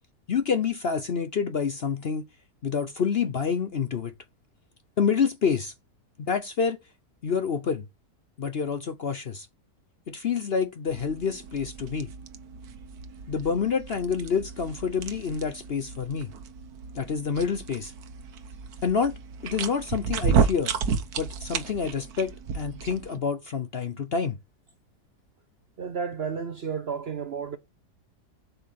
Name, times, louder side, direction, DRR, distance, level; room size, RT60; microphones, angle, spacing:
voice 1, 0.3-2.2 2.6-4.1 5.0-5.7 6.2-6.8 7.2-7.9 8.4-9.5 10.1-12.1 13.3-16.3 16.9-17.9 18.8-19.1 19.4-20.7 21.2-24.4, left 6 dB, 50° left, 0.8 m, -27 dB
sound 1, 10.9-23.2, right 6 dB, 70° right, 1.4 m, -32 dB
voice 2, 25.8-27.6, right 6 dB, 55° right, 0.7 m, -32 dB
7.9 x 5.7 x 7.6 m
omnidirectional pair, 1.7 m